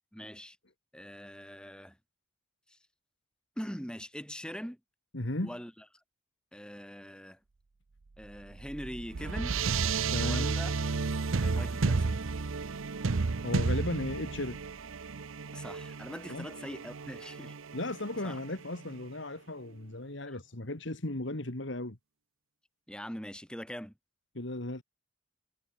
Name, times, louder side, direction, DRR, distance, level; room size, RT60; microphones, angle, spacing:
voice 1, 0.1-0.6 0.9-2.0 2.7-2.8 3.6-4.8 5.4-5.7 6.5-7.4 8.2-9.7 10.2-10.8 11.4-12.2 15.5-17.5 18.2-18.4 22.9-23.9, equal, 5° left, 4.6 m, -42 dB
voice 2, 5.1-5.6 10.1-10.5 13.4-14.6 16.3-16.5 17.7-22.0 24.3-24.8, left 1 dB, 60° left, 2.1 m, -36 dB
sound 1, 8.2-19.0, right 4 dB, 80° right, 0.7 m, -32 dB
head